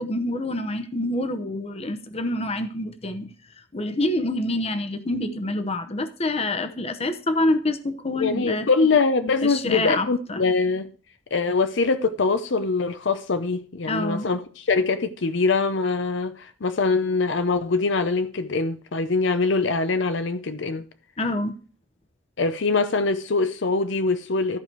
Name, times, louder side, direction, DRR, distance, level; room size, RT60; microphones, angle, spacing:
voice 1, 0.0-3.3 3.7-8.7 9.4-10.4 13.9-14.3 21.2-21.6, left 1 dB, 30° left, 0.9 m, -26 dB
voice 2, 8.2-10.9 11.3-20.9 22.4-24.6, left 4 dB, 65° left, 0.7 m, -23 dB
13.5 x 5.0 x 4.6 m
head